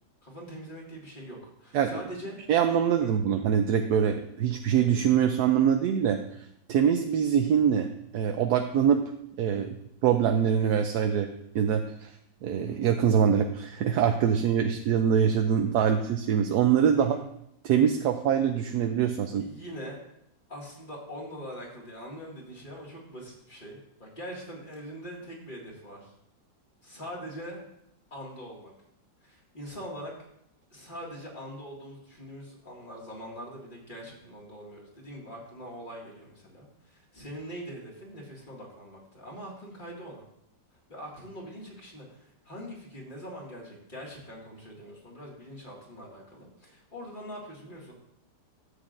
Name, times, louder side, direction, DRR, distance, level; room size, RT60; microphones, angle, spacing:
voice 1, 0.2-2.4 3.0-3.1 17.0-17.2 19.3-20.0 20.5-26.1 26.8-27.6 28.1-28.7 29.2-30.1 30.7-40.3 40.9-47.9, equal, 25° left, -3 dB, 2.2 m, -43 dB
voice 2, 2.5-6.2 6.7-9.0 9.4-9.7 10.0-11.3 11.5-12.1 12.4-17.2 17.6-19.5, right 8 dB, 70° right, 5 dB, 1.0 m, -24 dB
13.0 x 8.0 x 2.6 m, 0.78 s
omnidirectional pair, 1.9 m